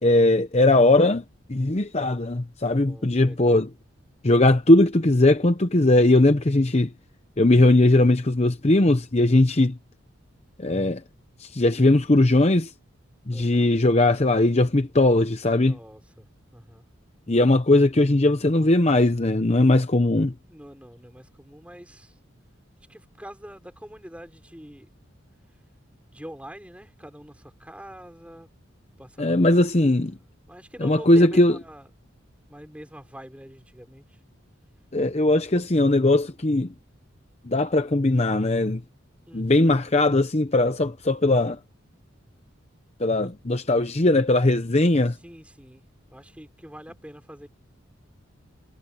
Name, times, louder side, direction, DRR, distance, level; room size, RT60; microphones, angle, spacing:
voice 1, 0.0-1.2 1.5-3.7 4.2-6.9 7.4-9.8 10.6-11.0 11.4-12.7 13.3-15.8 17.3-20.3 29.2-30.2 30.8-31.6 34.9-36.7 37.4-38.8 39.3-41.6 43.0-45.2, left 2 dB, 30° left, 0.8 m, -19 dB
voice 2, 2.7-3.6 13.3-13.7 15.6-16.8 20.5-22.2 22.9-24.9 26.1-28.5 29.0-30.0 30.4-31.9 32.5-34.2 39.3-39.7 43.2-43.3 45.2-45.8 46.1-47.5, equal, 5° right, 4.1 m, -44 dB
head